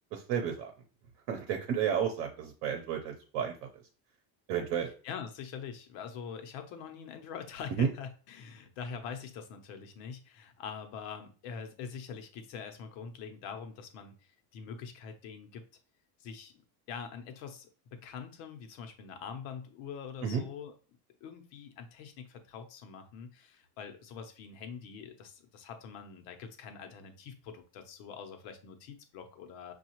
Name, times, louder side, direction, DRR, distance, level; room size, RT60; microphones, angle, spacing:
voice 1, 0.1-0.7 1.3-3.8 4.5-4.9 7.8-7.9 20.2-20.4, right 8 dB, 70° right, 3 dB, 0.8 m, -32 dB
voice 2, 5.0-15.6 16.2-16.5 16.9-20.7 21.2-29.7, left 6 dB, 80° left, 6 dB, 0.9 m, -44 dB
5.5 x 2.4 x 2.9 m, 0.38 s
cardioid pair, 145°, 45 cm